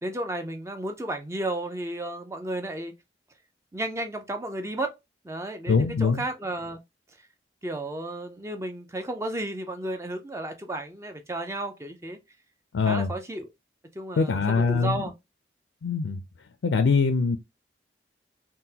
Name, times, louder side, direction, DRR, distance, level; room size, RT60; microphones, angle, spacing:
voice 1, 0.0-2.9 3.7-4.9 5.2-6.8 7.6-12.2 12.9-13.5 13.9-15.1, right 1 dB, 15° right, 0.5 m, -33 dB
voice 2, 5.7-6.2 12.7-13.1 14.2-15.0 15.8-16.2 16.6-17.4, left 4 dB, 90° left, 0.4 m, -23 dB
3.7 x 2.2 x 2.8 m
head